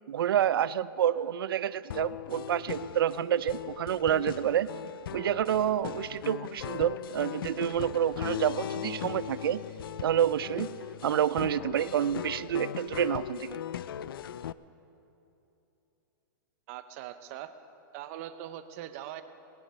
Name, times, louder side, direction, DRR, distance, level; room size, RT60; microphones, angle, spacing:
voice 1, 0.1-4.7 5.1-9.6 10.0-10.7 11.0-13.6, right 10 dB, 90° right, 17 dB, 0.5 m, -28 dB
sound 1, 1.9-14.5, left 10 dB, 85° left, 0.4 m, -39 dB
voice 2, 16.7-17.5 17.9-19.2, right 12 dB, 40° right, 10 dB, 0.8 m, -41 dB
19.0 x 9.9 x 5.5 m, 2.9 s
hypercardioid pair, 155°, 12 cm